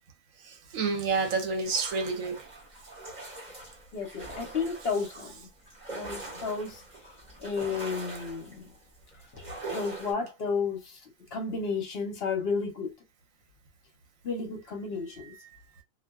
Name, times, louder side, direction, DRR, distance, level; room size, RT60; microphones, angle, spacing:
voice 1, 0.5-2.4, right 4 dB, 80° right, 1.2 m, -29 dB
sound 1, 1.6-10.1, right 2 dB, 35° right, 1.5 m, -42 dB
voice 2, 3.9-5.3 5.9-6.8 7.4-8.7 9.7-11.0 11.3-12.9 14.2-15.3, left 5 dB, 55° left, 0.9 m, -32 dB
2.6 x 2.5 x 2.2 m
omnidirectional pair, 1.4 m